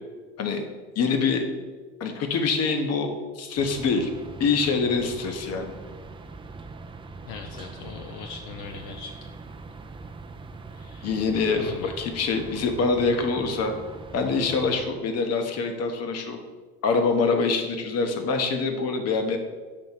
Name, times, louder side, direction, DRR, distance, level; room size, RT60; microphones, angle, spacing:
voice 1, 0.9-1.5 2.0-4.1 4.4-5.7 11.0-13.7 14.1-16.4 16.8-19.4, left 4 dB, 45° left, 6 dB, 1.0 m, -25 dB
sound 1, 3.6-14.9, right 3 dB, 15° right, 0.4 m, -42 dB
voice 2, 7.3-9.1 10.7-11.2 11.6-12.0, left 6 dB, 70° left, 3 dB, 0.6 m, -40 dB
6.4 x 3.1 x 5.6 m, 1.4 s
supercardioid pair, 95°, 35 cm